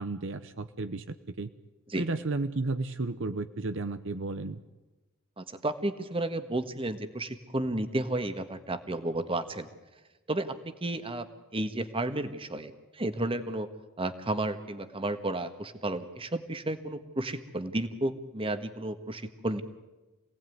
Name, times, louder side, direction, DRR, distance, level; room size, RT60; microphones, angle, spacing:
voice 1, 0.0-1.5 1.9-4.6, right 3 dB, 65° right, 10 dB, 0.9 m, -33 dB
voice 2, 5.4-9.7 10.3-11.3 11.5-13.7 14.0-19.6, right 1 dB, 25° right, 9 dB, 1.5 m, -32 dB
26.5 x 18.0 x 9.4 m, 1.1 s
head